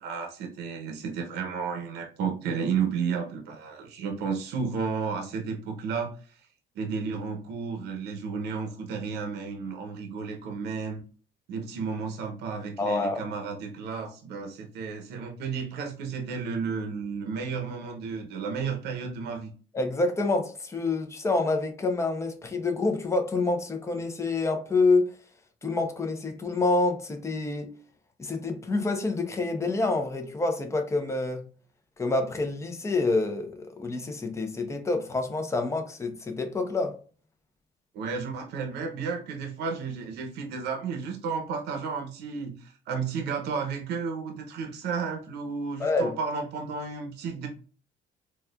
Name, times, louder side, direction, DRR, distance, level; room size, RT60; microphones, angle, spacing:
voice 1, 0.0-6.4 6.7-11.0 11.5-19.5 37.9-47.5, right 5 dB, 80° right, 0.8 m, -32 dB
voice 2, 12.8-13.2 19.7-25.1 25.6-27.7 28.2-31.5 32.0-37.0 45.8-46.1, left 3 dB, 15° left, 0.7 m, -27 dB
4.1 x 2.3 x 2.4 m
cardioid pair, 110°, 17 cm